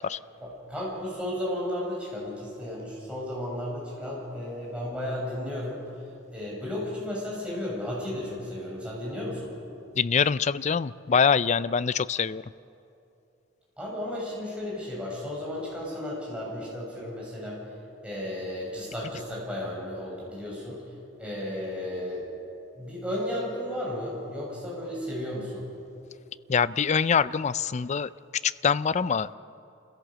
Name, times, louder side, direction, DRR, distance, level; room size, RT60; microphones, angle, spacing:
voice 1, 0.4-5.8 6.3-9.5 13.8-17.6 18.0-20.8 21.2-22.2 22.7-25.7, left 1 dB, 5° right, -5 dB, 6.9 m, -34 dB
voice 2, 10.0-12.4 26.5-28.1 28.4-29.3, left 6 dB, 35° left, 17 dB, 0.4 m, -24 dB
27.0 x 16.5 x 7.5 m, 2.7 s
head